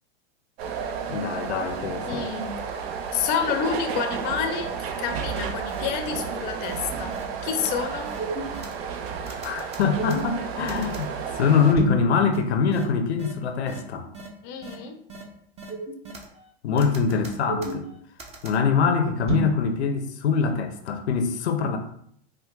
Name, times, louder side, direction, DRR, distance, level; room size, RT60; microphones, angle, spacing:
sound 1, 0.6-11.7, right 6 dB, 70° right, 0.5 m, -32 dB
voice 1, 1.1-2.2 9.4-14.1 16.6-17.9 18.4-21.8, left 5 dB, 90° left, 7 dB, 0.5 m, -24 dB
voice 2, 2.0-2.6 3.1-7.1 7.4-8.1 14.4-15.0, left 7 dB, 35° left, 5 dB, 0.4 m, -29 dB
sound 2, 5.3-5.4 5.7-5.8 6.1-6.3 6.6-6.8 7.1-7.2 7.6-7.7 8.1-8.9 9.3-11.0 11.7-12.0 12.3-12.4 12.7-12.8 13.2-13.3 13.7-13.8 14.1-14.3 14.6-14.7 15.1-15.2 15.6-16.4 16.8-18.6 19.3-19.5, right 2 dB, 20° right, 0.5 m, -32 dB
4.5 x 2.1 x 2.2 m, 0.67 s
hypercardioid pair, 115°, 32 cm